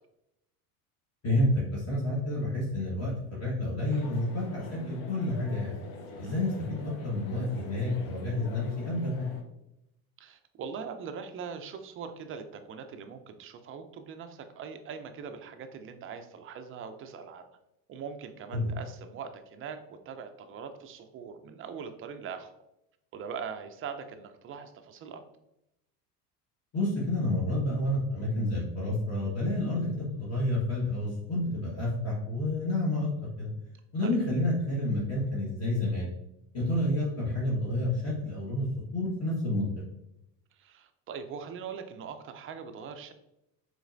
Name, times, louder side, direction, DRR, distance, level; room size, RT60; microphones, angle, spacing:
voice 1, 1.2-5.8 6.2-9.3 18.5-18.7 26.7-33.5 33.9-36.1 36.5-38.7 38.9-39.7, left 1 dB, 30° left, -6 dB, 1.3 m, -29 dB
sound 1, 3.9-9.4, left 3 dB, 50° left, 0.8 m, -45 dB
voice 2, 10.2-17.5 17.9-22.5 23.1-25.2 34.0-34.2 40.5-43.1, right 6 dB, 30° right, 7 dB, 0.4 m, -41 dB
4.1 x 3.2 x 2.5 m, 0.84 s
hypercardioid pair, 90°, 47 cm